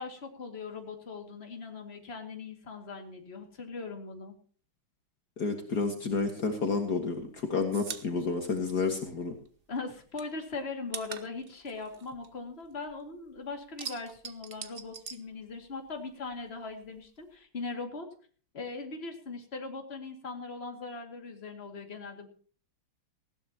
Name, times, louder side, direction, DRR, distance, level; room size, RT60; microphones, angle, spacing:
voice 1, 0.0-4.3 9.7-18.1 18.5-22.3, left 4 dB, 30° left, 4 dB, 2.5 m, -40 dB
voice 2, 5.4-9.4, left 4 dB, 55° left, 4 dB, 2.3 m, -30 dB
sound 1, 6.7-9.5 9.8-13.1 13.4-16.0 16.2-17.3, right 6 dB, 45° right, 0.8 m, -44 dB
19.0 x 16.0 x 2.9 m, 0.43 s
omnidirectional pair, 2.2 m